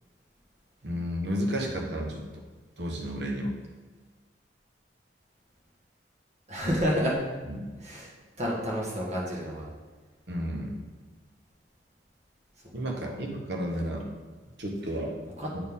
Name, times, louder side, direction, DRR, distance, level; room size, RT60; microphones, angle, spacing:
voice 1, 0.8-2.2 2.8-3.5 7.5-7.7 10.3-10.8 12.7-14.1 14.6-15.1, equal, 70° right, 1 dB, 1.1 m, -32 dB
voice 2, 6.5-7.2 7.8-8.1 8.4-9.7 15.4-15.5, equal, 40° right, -4 dB, 1.7 m, -29 dB
9.0 x 4.4 x 3.6 m, 1.4 s
head